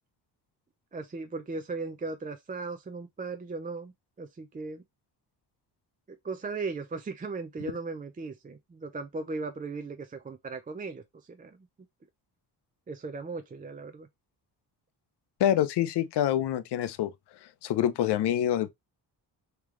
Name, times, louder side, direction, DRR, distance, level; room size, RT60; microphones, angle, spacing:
voice 1, 0.9-4.8 6.2-11.0 11.3-11.6 12.9-14.1, right 3 dB, 20° right, 0.5 m, -37 dB
voice 2, 15.4-17.1 17.6-18.7, left 11 dB, 75° left, 0.6 m, -26 dB
3.2 x 3.0 x 3.7 m
cardioid pair, 105°, 41 cm